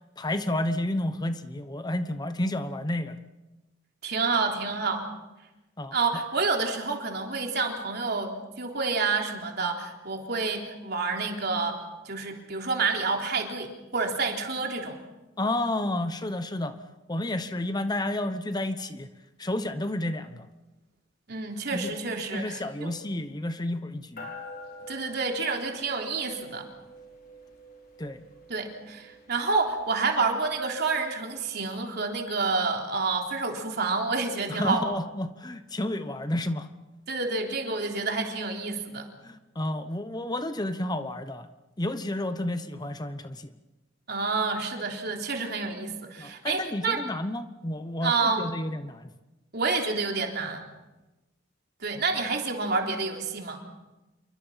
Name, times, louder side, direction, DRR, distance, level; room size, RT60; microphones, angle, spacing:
voice 1, 0.2-3.2 5.8-5.9 15.4-16.7 17.1-19.1 19.4-20.5 21.7-22.0 22.3-24.3 28.0-28.2 34.5-36.7 39.2-41.5 41.8-43.5 46.2-49.1, left 1 dB, 20° left, 10 dB, 1.0 m, -31 dB
voice 2, 4.0-5.1 5.9-15.0 21.3-23.0 24.9-26.7 28.5-34.9 37.1-39.1 44.1-47.0 48.0-48.5 49.5-50.6 51.8-53.6, right 4 dB, 55° right, 2 dB, 3.7 m, -29 dB
sound 1, 24.2-31.9, left 1 dB, 50° left, 5.1 m, -47 dB
28.0 x 23.5 x 5.8 m, 1.1 s
head